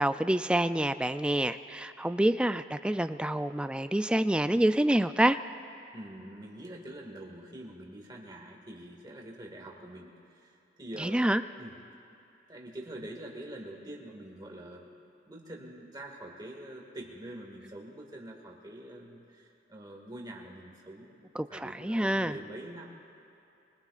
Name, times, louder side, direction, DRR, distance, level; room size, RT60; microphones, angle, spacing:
voice 1, 0.0-5.4 11.0-11.4 21.4-22.4, right 1 dB, 5° right, 10 dB, 0.3 m, -27 dB
voice 2, 5.9-11.1 11.6-11.7 12.5-14.9 15.3-23.0, right 1 dB, 25° right, -1 dB, 2.0 m, -45 dB
24.0 x 20.0 x 2.5 m, 2.9 s
head